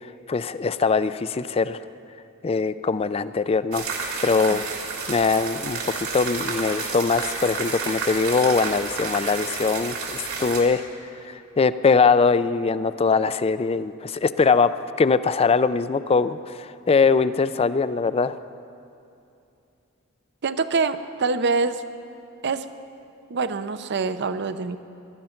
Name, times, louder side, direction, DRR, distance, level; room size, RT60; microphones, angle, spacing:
voice 1, 0.3-1.8 2.4-4.6 5.1-10.8 11.3-14.7 15.0-18.4, left 4 dB, 30° left, 14 dB, 0.4 m, -22 dB
sound 1, 3.7-10.6, right 4 dB, 80° right, 3.0 m, -30 dB
voice 2, 20.4-21.8 22.4-22.7 23.3-24.8, right 4 dB, 55° right, 12 dB, 0.6 m, -25 dB
19.5 x 12.0 x 5.8 m, 2.7 s
head